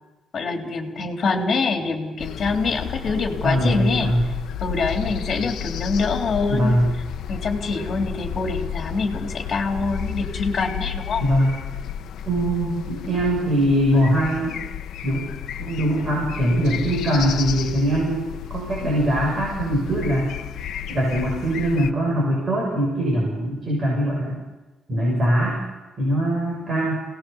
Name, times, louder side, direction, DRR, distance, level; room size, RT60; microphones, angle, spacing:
voice 1, 0.3-4.1 4.6-6.8 7.3-11.2, left 4 dB, 40° left, 2 dB, 3.5 m, -25 dB
sound 1, 2.2-21.9, left 9 dB, 85° left, 1.0 m, -32 dB
voice 2, 3.4-4.3 6.5-6.9 11.2-11.5 12.2-14.6 15.0-15.3 15.6-20.3 20.9-24.4 24.9-25.6 26.0-27.0, equal, 30° right, -3 dB, 7.2 m, -22 dB
27.5 x 19.0 x 7.1 m, 1.2 s
cardioid pair, 160°, 0 cm